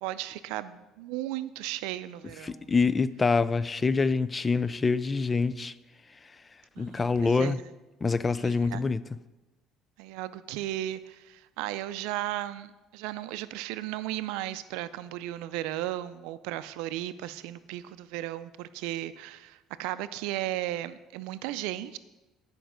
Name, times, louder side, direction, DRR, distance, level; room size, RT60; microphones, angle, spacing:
voice 1, 0.0-2.7 6.8-7.5 8.4-8.8 10.0-22.0, right 14 dB, 90° right, 0.4 m, -35 dB
voice 2, 2.4-5.7 6.8-7.6 8.0-9.0, left 4 dB, 20° left, 0.3 m, -25 dB
10.0 x 5.2 x 6.2 m
cardioid pair, 110°, 0 cm